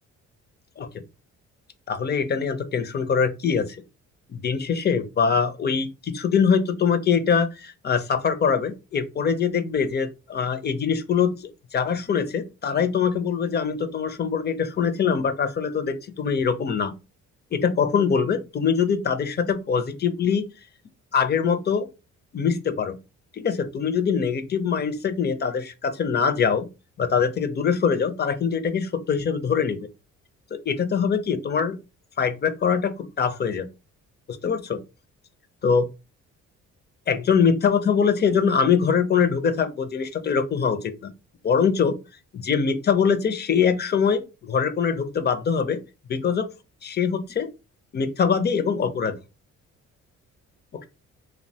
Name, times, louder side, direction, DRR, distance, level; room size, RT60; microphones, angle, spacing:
voice 1, 1.9-3.8 4.3-16.9 17.5-20.5 21.1-21.9 22.3-23.0 23.3-26.7 27.0-29.9 30.7-31.8 32.2-33.7 34.4-34.8 35.6-35.9 37.1-41.1 41.4-42.0 42.3-45.8 46.1-46.5 46.8-47.5 47.9-49.2, left 6 dB, 35° left, 0.4 m, -23 dB
2.9 x 2.1 x 2.7 m
cardioid pair, 90°, 30 cm